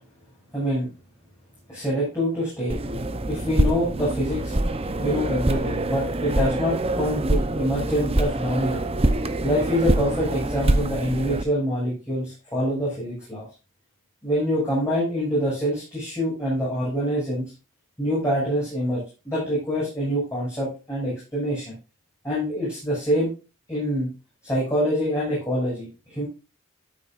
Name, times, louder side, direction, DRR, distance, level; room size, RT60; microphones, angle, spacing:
voice 1, 0.5-0.9 1.7-2.8 3.3-4.5 5.0-8.8 9.4-13.4 14.2-17.4 18.0-21.7 22.2-23.3 23.7-24.1 24.4-26.3, equal, 15° left, -8 dB, 6.8 m, -25 dB
sound 1, 2.7-11.4, right 1 dB, 25° right, 0.8 m, -25 dB
13.5 x 8.9 x 2.6 m, 0.30 s
head